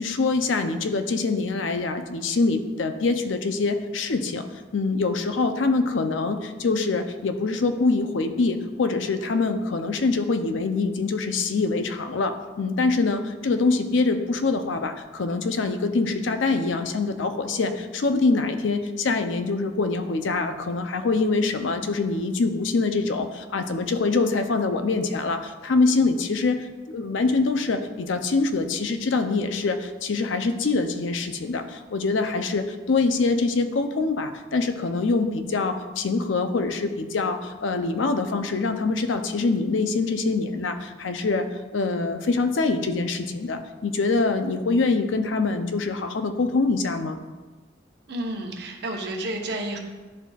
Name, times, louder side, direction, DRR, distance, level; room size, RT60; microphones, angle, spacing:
voice 1, 0.0-4.5 4.7-41.5 41.7-47.2, left 3 dB, 90° left, 7 dB, 0.5 m, -24 dB
voice 2, 48.1-49.8, right 1 dB, 60° right, 1 dB, 0.9 m, -30 dB
11.0 x 4.1 x 2.4 m, 1.3 s
head